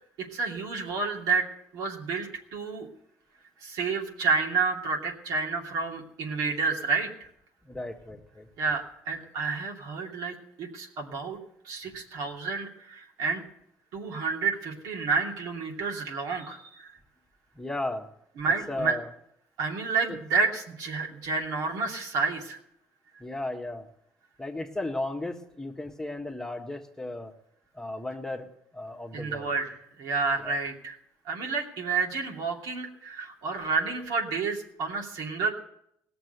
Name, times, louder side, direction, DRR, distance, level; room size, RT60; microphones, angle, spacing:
voice 1, 0.2-1.5 1.7-2.9 3.6-7.3 8.6-11.4 11.6-13.4 13.9-16.9 18.4-19.0 19.6-22.6 29.1-31.0 31.3-35.5, right 4 dB, 70° right, 0 dB, 2.6 m, -30 dB
voice 2, 7.6-8.5 17.5-18.1 18.7-19.1 20.1-20.2 23.2-23.9 24.4-27.3 27.7-29.5 30.4-30.6, left 2 dB, 10° left, 4 dB, 1.5 m, -35 dB
17.5 x 6.9 x 8.0 m, 0.75 s
supercardioid pair, 75°, 7 cm